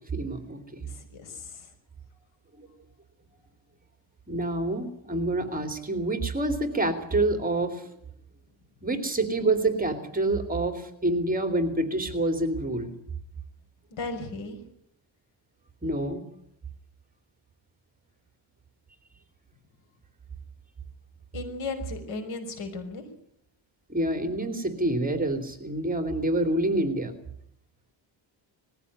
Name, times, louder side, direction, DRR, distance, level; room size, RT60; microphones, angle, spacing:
voice 1, 0.1-0.9 2.6-2.7 4.3-7.9 8.8-12.9 15.8-16.2 23.9-27.2, right 2 dB, 20° right, 6 dB, 2.9 m, -27 dB
voice 2, 0.9-1.7 13.9-14.6 21.3-23.0, left 3 dB, 85° left, 5 dB, 5.6 m, -36 dB
20.5 x 15.0 x 9.9 m, 0.73 s
cardioid pair, 140°, 47 cm